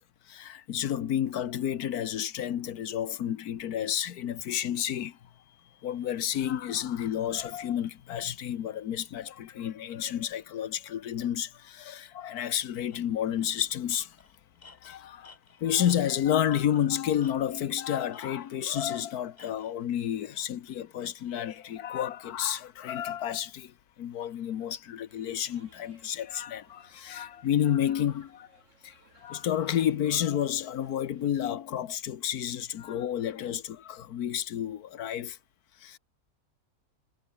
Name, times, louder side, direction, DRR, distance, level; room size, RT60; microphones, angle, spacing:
voice 1, 0.3-5.2 5.8-14.2 14.8-15.3 15.6-28.5 28.8-35.4 35.8-36.0, left 10 dB, 90° left, 1.5 m, -30 dB
Tools, 12.4-12.5 12.9-13.0 13.4-13.6 13.9-16.9 17.2-17.7 18.1-19.8, left 4 dB, 30° left, 1.4 m, -55 dB
sound 1, 25.1-31.3, right 3 dB, 55° right, 3.8 m, -62 dB
omnidirectional pair, 1.6 m